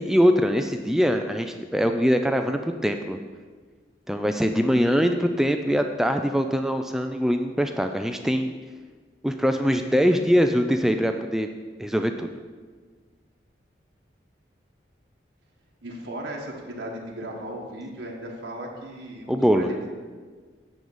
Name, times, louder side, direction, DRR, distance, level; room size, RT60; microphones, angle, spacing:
voice 1, 0.0-3.2 4.1-8.5 9.2-11.5 11.8-12.3 19.3-19.7, equal, ahead, 6 dB, 0.3 m, -22 dB
voice 2, 15.8-19.9, right 1 dB, 80° right, -2 dB, 1.4 m, -36 dB
9.2 x 3.9 x 7.1 m, 1.5 s
head